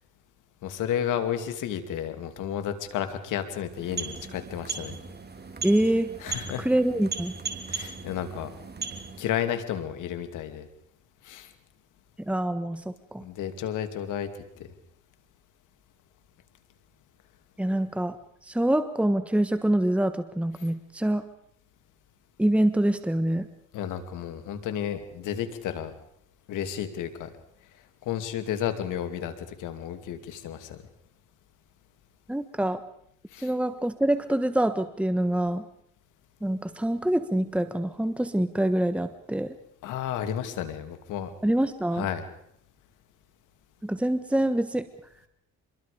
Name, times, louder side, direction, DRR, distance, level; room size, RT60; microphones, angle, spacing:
voice 1, 0.6-5.0 6.2-6.7 7.7-8.5 9.2-10.7 11.2-11.5 13.2-14.3 14.6-14.7 23.7-25.9 26.5-27.3 28.0-30.8 33.3-33.5 39.8-41.3 42.0-42.3, left 9 dB, 90° left, 8 dB, 2.5 m, -32 dB
sound 1, 3.6-9.4, right 5 dB, 35° right, 3.2 m, -37 dB
voice 2, 5.6-6.1 6.6-7.3 12.2-13.2 17.6-18.2 18.4-21.3 22.4-23.5 32.3-32.8 33.4-35.7 36.4-39.5 41.4-42.1 43.8-44.9, right 1 dB, 5° right, 10 dB, 1.4 m, -25 dB
26.5 x 22.5 x 5.1 m, 0.73 s
cardioid pair, 90°, 30 cm